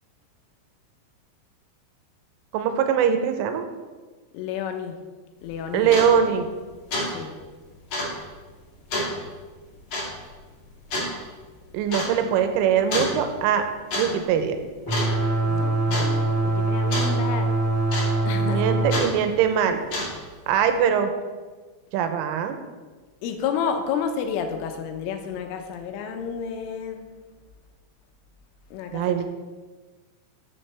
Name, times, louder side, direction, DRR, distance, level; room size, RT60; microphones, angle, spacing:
voice 1, 2.5-3.7 5.7-6.5 11.7-13.7 14.0-14.6 18.4-19.8 20.5-21.1 21.9-22.6 28.9-29.2, right 8 dB, 85° right, 7 dB, 3.3 m, -22 dB
voice 2, 4.3-5.0 5.4-6.0 7.1-7.3 9.2-9.3 15.5-17.5 18.2-18.6 23.2-27.1 28.7-29.2, left 7 dB, 85° left, 5 dB, 3.4 m, -30 dB
sound 1, 5.4-5.5 5.8-6.1 6.5-6.6 6.9-7.1 7.4-7.5 7.9-8.1 8.9-9.1 9.9-10.1 10.9-11.1 11.9-12.1 12.9-13.2 13.7-14.1 14.3-14.6 14.9-15.4 15.9-16.1 16.9-17.1 17.9-18.3 18.9-19.1 19.7-20.3, left 1 dB, 45° left, 3.5 m, -27 dB
sound 2, 14.8-19.0, right 2 dB, 5° left, 1.8 m, -23 dB
13.0 x 7.6 x 3.3 m, 1.4 s
omnidirectional pair, 5.6 m